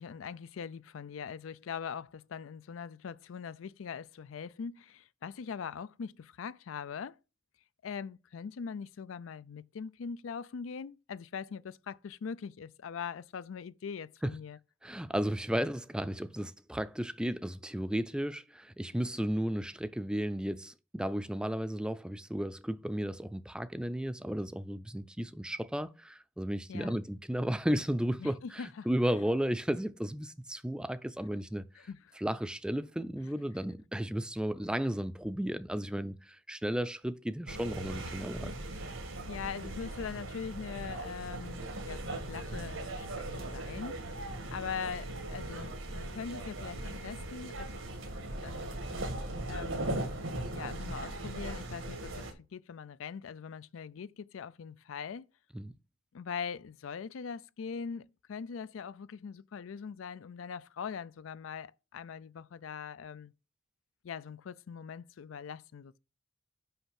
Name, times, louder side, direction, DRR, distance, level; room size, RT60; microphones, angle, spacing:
voice 1, 0.0-7.2 7.8-14.6 26.7-27.0 28.2-28.9 31.8-32.0 39.3-47.8 48.4-48.8 49.5-50.0 50.5-52.2 52.5-55.3 56.1-63.3 64.0-66.0, left 6 dB, 90° left, 0.4 m, -42 dB
voice 2, 14.8-31.6 32.2-38.6 55.5-55.7, equal, 5° right, 0.4 m, -34 dB
sound 1, 37.5-52.3, right 1 dB, 85° right, 1.6 m, -39 dB
5.6 x 5.4 x 5.8 m
head